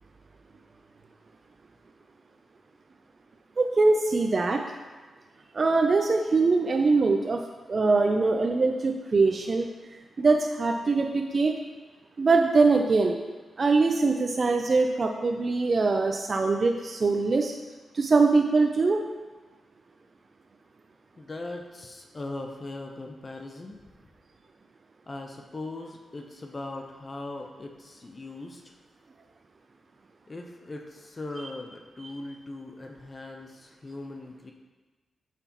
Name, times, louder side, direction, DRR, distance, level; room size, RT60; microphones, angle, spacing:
voice 1, 3.6-4.6 5.5-7.4 7.7-9.7 10.2-11.5 12.2-13.2 13.6-17.5 17.9-19.0, right 3 dB, 45° right, 4 dB, 0.5 m, -22 dB
voice 2, 21.2-23.8 25.1-28.6 30.3-34.5, left 2 dB, 35° left, 2 dB, 0.7 m, -39 dB
7.7 x 5.9 x 3.0 m, 1.3 s
cardioid pair, 65°, 0 cm